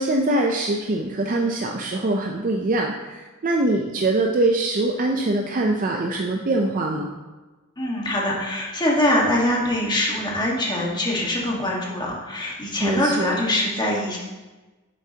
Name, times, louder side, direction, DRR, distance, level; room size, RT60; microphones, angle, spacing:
voice 1, 0.0-7.1 12.8-13.4, right 2 dB, 40° right, 1 dB, 0.5 m, -23 dB
voice 2, 7.8-14.2, left 1 dB, 20° left, -3 dB, 1.5 m, -23 dB
8.3 x 7.3 x 2.8 m, 1.2 s
head